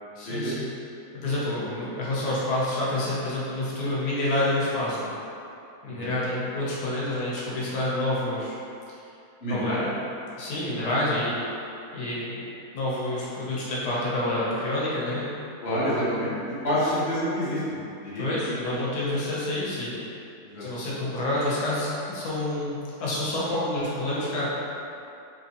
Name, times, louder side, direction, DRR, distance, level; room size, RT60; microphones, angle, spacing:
voice 1, 0.1-0.7 1.1-5.1 5.8-8.5 9.5-9.9 10.4-11.4 11.9-12.4 12.7-15.2 16.8-16.9 18.2-20.0 20.6-24.5, left 1 dB, 85° left, -7 dB, 1.3 m, -28 dB
voice 2, 9.4-9.8 15.6-18.5 20.4-20.8, equal, 45° left, -11 dB, 1.2 m, -28 dB
3.5 x 3.0 x 2.8 m, 2.7 s
omnidirectional pair, 1.7 m